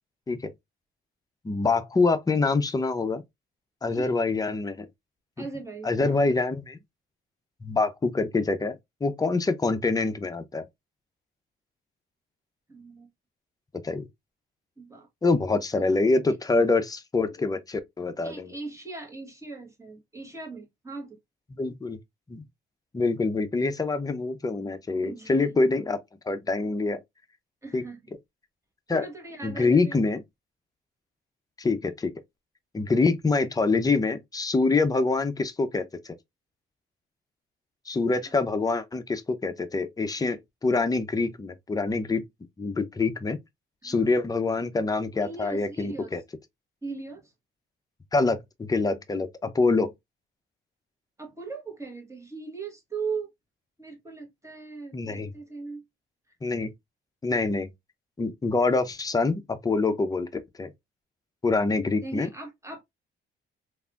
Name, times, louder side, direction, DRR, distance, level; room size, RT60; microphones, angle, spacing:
voice 1, 1.4-3.2 3.8-4.9 5.4-5.5 5.8-6.8 7.6-8.8 9.0-10.6 13.8-14.1 15.2-18.5 21.5-22.0 22.3-22.4 22.9-26.0 26.3-27.0 27.7-27.8 28.9-29.1 29.4-30.2 31.6-32.1 32.7-36.2 37.9-42.2 42.6-43.4 43.8-46.2 48.1-49.9 54.9-55.3 56.4-56.7 57.2-57.7 58.2-60.7 61.4-62.3, left 3 dB, 20° left, 0.5 m, -25 dB
voice 2, 5.4-6.2 12.7-13.1 14.8-15.1 15.4-15.9 18.2-21.2 25.0-25.6 27.6-28.0 28.9-30.0 38.3-38.4 43.8-44.1 45.2-46.2 46.8-47.3 51.2-53.3 53.8-55.8 62.0-62.8, right 4 dB, 15° right, 1.3 m, -39 dB
3.3 x 2.5 x 2.4 m
cardioid pair, 90°, 20 cm